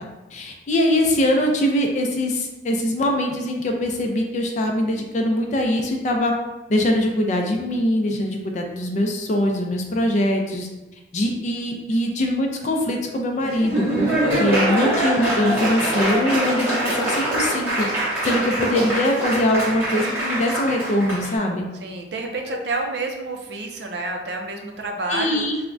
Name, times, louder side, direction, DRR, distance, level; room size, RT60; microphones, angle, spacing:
voice 1, 0.0-6.3 6.7-10.7 11.1-17.9 18.2-21.7 25.1-25.6, left 1 dB, 40° left, 2 dB, 0.4 m, -22 dB
Laughter / Applause, 13.4-21.3, right 1 dB, 15° right, 0.7 m, -24 dB
voice 2, 21.8-25.4, right 2 dB, 65° right, 2 dB, 0.4 m, -29 dB
3.4 x 2.1 x 2.5 m, 1.1 s
head